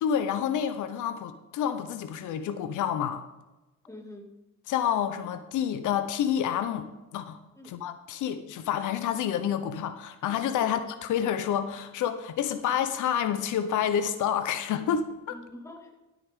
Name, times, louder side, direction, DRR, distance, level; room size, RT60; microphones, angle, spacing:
voice 1, 0.0-3.2 4.7-7.4 7.6-15.4, left 9 dB, 85° left, 10 dB, 1.0 m, -29 dB
voice 2, 3.9-4.4 7.5-7.8 15.3-16.0, left 1 dB, 10° left, 1 dB, 2.3 m, -45 dB
13.0 x 8.6 x 3.8 m, 1.1 s
cardioid pair, 90°, 30 cm